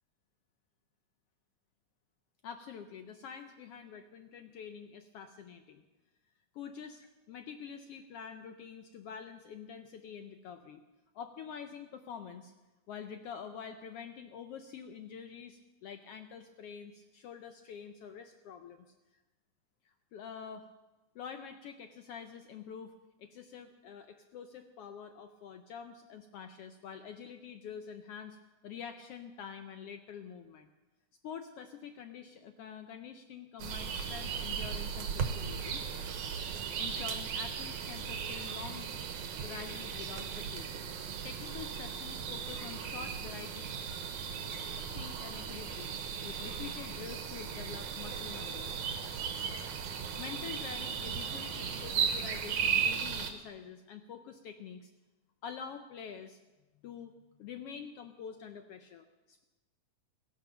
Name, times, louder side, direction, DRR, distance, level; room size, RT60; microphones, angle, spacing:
voice 1, 2.4-5.8 6.5-10.8 11.1-12.5 12.9-18.9 19.1-19.2 19.8-20.7 21.1-22.9 23.2-28.4 28.6-30.7 31.2-35.8 36.8-38.9 39.4-40.7 41.2-43.8 44.9-45.9 46.2-48.7 49.8-54.9 55.4-56.4 56.8-57.1 57.4-59.4, left 7 dB, 75° left, 7 dB, 1.3 m, -46 dB
sound 1, 33.6-53.3, right 7 dB, 80° right, 2.6 m, -36 dB
15.0 x 11.0 x 6.8 m, 1.1 s
omnidirectional pair, 3.4 m